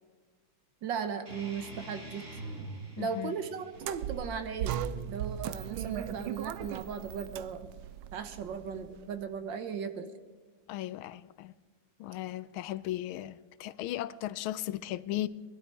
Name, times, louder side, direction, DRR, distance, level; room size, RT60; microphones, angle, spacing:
voice 1, 0.8-2.2 3.0-4.8 5.1-7.7 8.1-10.1, right 6 dB, 65° right, 1.7 m, -37 dB
sound 1, 1.3-6.3, right 2 dB, 35° right, 3.6 m, -46 dB
voice 2, 3.0-3.4 10.7-11.5 12.0-15.3, left 14 dB, 85° left, 1.5 m, -36 dB
sound 2, 3.8-9.0, right 10 dB, 85° right, 1.5 m, -37 dB
21.0 x 12.0 x 4.6 m
omnidirectional pair, 2.2 m